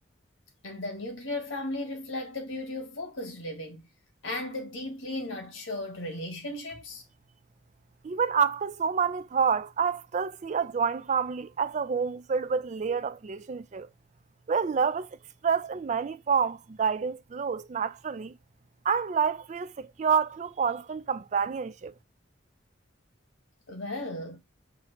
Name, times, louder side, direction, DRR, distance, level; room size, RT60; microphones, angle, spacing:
voice 1, 0.6-3.8 4.2-7.0 23.7-24.4, left 1 dB, 90° left, 1.5 m, -36 dB
voice 2, 8.0-13.9 14.5-15.1 15.4-18.4 18.8-21.9, right 6 dB, 40° right, 0.3 m, -28 dB
5.7 x 2.8 x 3.1 m
head